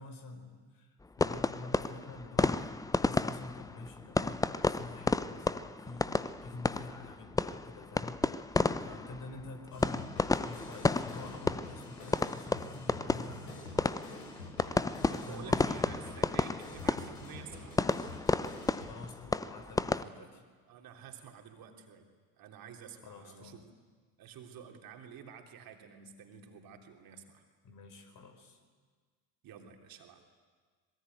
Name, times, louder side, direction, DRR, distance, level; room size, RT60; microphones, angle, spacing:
voice 1, 0.0-14.1 15.3-15.8 18.6-20.4 23.0-23.7 27.6-28.6, left 3 dB, 45° left, 7 dB, 4.7 m, -48 dB
sound 1, 1.2-20.0, left 3 dB, 5° left, 0.7 m, -32 dB
sound 2, 9.7-18.9, left 2 dB, 80° left, 5.6 m, -48 dB
voice 2, 15.1-17.8 20.2-20.3 20.7-22.1 22.4-23.7 24.2-27.4 29.4-30.2, right 7 dB, 45° right, 3 dB, 3.5 m, -50 dB
26.0 x 21.5 x 9.3 m, 1.5 s
figure-of-eight pair, 65°, 47 cm